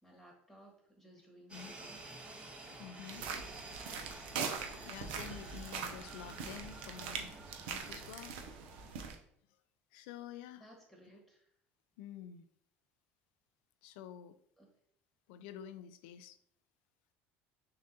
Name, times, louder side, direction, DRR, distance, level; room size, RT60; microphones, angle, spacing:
voice 1, 0.0-2.1 3.1-3.4 10.6-11.5 14.6-14.7, right 1 dB, ahead, 0 dB, 1.5 m, -59 dB
sound 1, 1.5-8.9, right 2 dB, 20° right, 1.4 m, -51 dB
voice 2, 2.8-3.3 4.2-4.4 4.8-7.3 7.7-8.4 9.9-10.7 12.0-12.5 13.8-14.4 15.3-16.4, left 10 dB, 80° left, 12 dB, 0.4 m, -49 dB
sound 2, 3.1-9.2, right 6 dB, 80° right, 0.6 m, -42 dB
6.2 x 2.5 x 2.7 m, 0.66 s
supercardioid pair, 85°, 6 cm